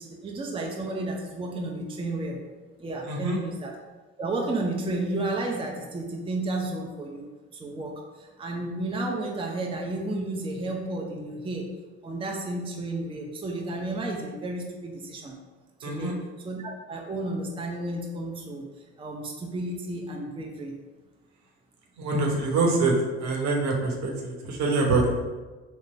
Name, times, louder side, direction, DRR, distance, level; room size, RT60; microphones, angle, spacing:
voice 1, 0.0-2.4 2.8-3.8 4.2-11.7 12.0-15.4 15.8-18.7 19.0-20.8, right 2 dB, 15° right, 0 dB, 0.6 m, -32 dB
voice 2, 3.1-3.4 15.8-16.1 22.0-22.9 23.2-25.2, right 3 dB, 60° right, 0 dB, 1.0 m, -25 dB
3.7 x 2.1 x 4.3 m, 1.3 s
hypercardioid pair, 60°, 32 cm